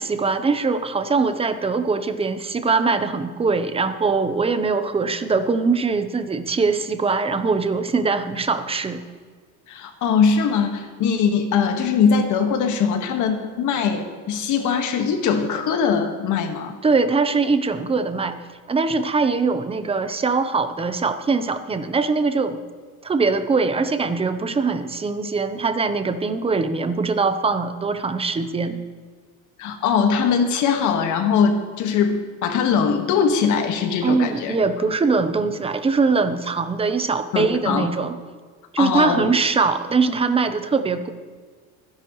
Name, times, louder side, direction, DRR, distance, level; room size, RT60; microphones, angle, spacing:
voice 1, 0.0-9.0 16.8-18.4 18.7-22.6 23.0-28.8 34.0-38.2 38.7-41.1, right 4 dB, 15° right, 10 dB, 0.8 m, -22 dB
voice 2, 9.7-16.8 29.6-34.5 37.3-37.9 38.8-39.3, left 6 dB, 55° left, 5 dB, 1.8 m, -21 dB
25.0 x 10.5 x 3.2 m, 1.6 s
cardioid pair, 135°, 35 cm